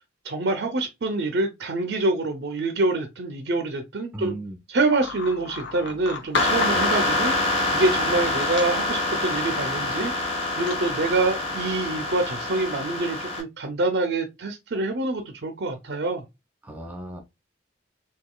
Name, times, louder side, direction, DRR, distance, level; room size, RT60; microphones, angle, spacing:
voice 1, 0.2-4.3 4.7-10.1 10.5-16.2, right 2 dB, 60° right, 0.5 m, -26 dB
voice 2, 4.1-4.6 6.7-6.9 16.6-17.2, right 1 dB, 10° right, 0.8 m, -35 dB
sound 1, 5.0-12.9, left 4 dB, 65° left, 0.6 m, -36 dB
sound 2, 6.3-13.4, left 2 dB, 30° left, 0.9 m, -26 dB
3.6 x 2.8 x 2.2 m
head